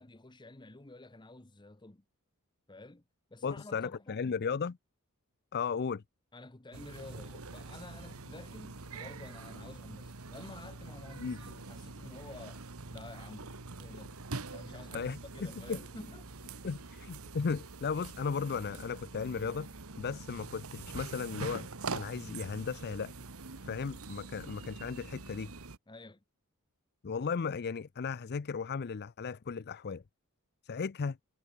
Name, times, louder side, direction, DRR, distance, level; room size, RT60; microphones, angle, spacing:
voice 1, 0.0-2.0 2.7-3.0 3.3-4.2 6.3-12.6 12.9-14.2 14.5-16.3 25.9-26.2, left 2 dB, 20° left, 1.1 m, -50 dB
voice 2, 3.4-4.8 5.5-6.0 11.2-11.4 14.9-15.2 15.7-15.8 16.6-19.7 20.0-23.1 23.6-25.5 27.0-30.0 30.6-31.2, left 5 dB, 45° left, 0.5 m, -35 dB
sound 1, 6.7-25.8, right 3 dB, 70° right, 1.6 m, -45 dB
head